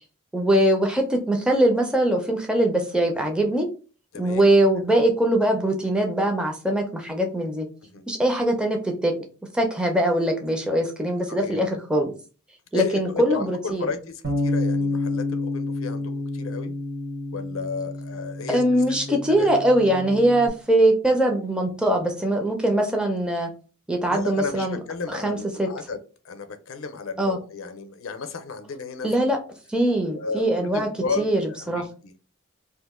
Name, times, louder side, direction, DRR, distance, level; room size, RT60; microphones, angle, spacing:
voice 1, 0.3-3.7 4.2-7.7 8.1-9.1 9.5-12.1 12.7-13.8 18.5-23.5 23.9-24.8 25.1-25.7 27.2-27.4 29.0-29.4 29.7-30.9 31.2-31.4 31.7-31.8, right 1 dB, 5° right, 2 dB, 0.4 m, -22 dB
voice 2, 4.1-4.5 7.8-8.0 11.3-11.6 12.7-16.7 17.3-19.5 24.1-26.0 26.2-29.1 30.1-31.3 31.6-32.1, left 4 dB, 70° left, 8 dB, 0.5 m, -33 dB
Bass guitar, 14.2-20.5, left 2 dB, 65° right, 1.0 m, -29 dB
2.8 x 2.5 x 3.5 m, 0.36 s
head